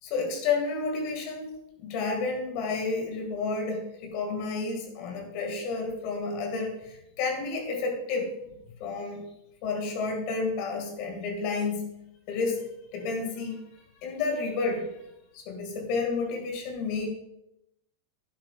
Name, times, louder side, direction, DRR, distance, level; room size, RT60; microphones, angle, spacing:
voice 1, 0.0-1.5 1.8-8.3 8.8-9.2 9.6-11.9 12.3-12.6 12.9-14.9 15.3-17.1, left 4 dB, 45° left, 3 dB, 2.2 m, -31 dB
12.0 x 11.5 x 2.5 m, 0.82 s
figure-of-eight pair, 90°, 0 cm